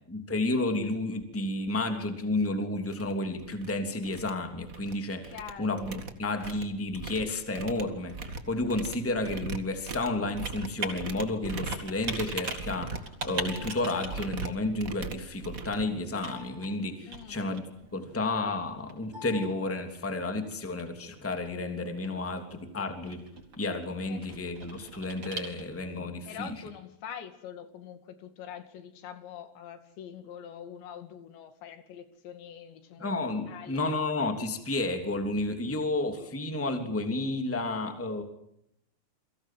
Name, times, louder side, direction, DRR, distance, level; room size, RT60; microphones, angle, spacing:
voice 1, 0.1-17.6 17.9-23.2 23.6-26.5 33.0-38.2, left 2 dB, 5° left, 6 dB, 2.1 m, -31 dB
sound 1, 2.4-2.5 2.9-3.1 3.4-3.7 4.0-4.9 5.2-16.5, right 4 dB, 60° right, 0.8 m, -40 dB
voice 2, 5.3-5.9 17.1-17.5 24.1-24.2 26.3-33.2 33.5-34.0 35.7-35.9, left 8 dB, 90° left, 8 dB, 4.6 m, -44 dB
Computer keyboard, 7.7-26.0, right 3 dB, 30° right, 5.2 m, -43 dB
29.5 x 23.0 x 7.7 m, 0.79 s
omnidirectional pair, 5.0 m